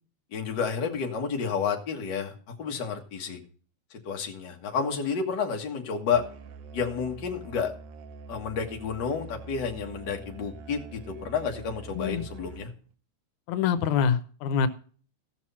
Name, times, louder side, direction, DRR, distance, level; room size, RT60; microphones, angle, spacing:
voice 1, 0.3-3.4 4.1-6.2 6.7-7.7 8.3-12.7, left 6 dB, 45° left, 2 dB, 1.9 m, -30 dB
Musical instrument, 6.1-12.9, right 4 dB, 70° right, 1.9 m, -45 dB
voice 2, 13.5-14.7, left 7 dB, 90° left, 12 dB, 2.2 m, -25 dB
16.5 x 6.2 x 4.2 m, 0.42 s
omnidirectional pair, 3.3 m